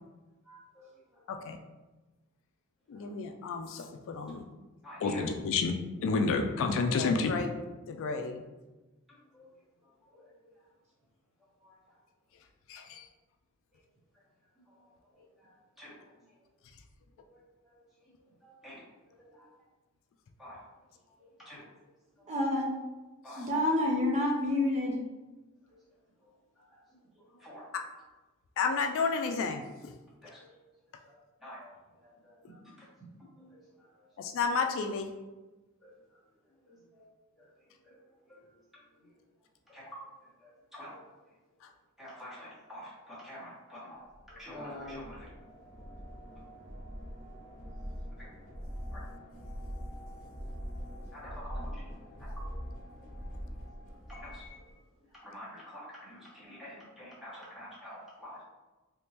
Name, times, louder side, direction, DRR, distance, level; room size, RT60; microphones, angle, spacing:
voice 1, 0.4-1.5 2.9-3.2 4.8-5.2 9.1-10.7 11.6-12.0 12.8-12.9 14.1-14.2 14.6-16.5 17.3-19.5 20.4-20.8 21.0-21.7 22.1-22.4 23.2-23.6 25.6-25.8 26.2-28.0 30.2-30.5 31.0-32.9 33.4-34.1 35.8-37.1 37.4-39.2 39.7-45.3 48.2-48.3 48.9-49.0 51.1-51.9 52.2-52.5 53.2-53.3 53.9-58.4, equal, ahead, -8 dB, 1.2 m, -50 dB
voice 2, 2.9-4.4 5.0-7.6 7.9-8.4 12.7-13.0 28.6-29.9 34.2-35.1, left 4 dB, 65° left, 5 dB, 0.3 m, -31 dB
voice 3, 22.3-22.8 23.4-25.0, left 1 dB, 30° right, -2 dB, 0.6 m, -28 dB
sound 1, 44.1-54.7, equal, 40° left, 1.0 m, -43 dB
3.5 x 2.9 x 2.8 m, 1.2 s
head